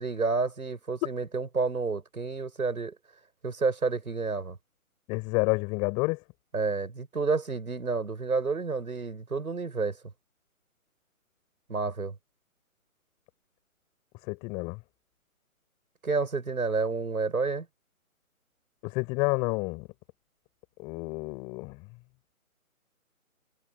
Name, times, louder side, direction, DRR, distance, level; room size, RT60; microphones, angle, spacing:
voice 1, 0.0-3.0 3.4-4.6 6.5-10.0 11.7-12.2 16.0-17.7, right 4 dB, 80° right, 7.0 m, -29 dB
voice 2, 5.1-6.2 14.2-14.8 18.8-19.9 20.8-21.9, left 27 dB, 10° left, 5.2 m, -29 dB
hypercardioid pair, 170°, 43 cm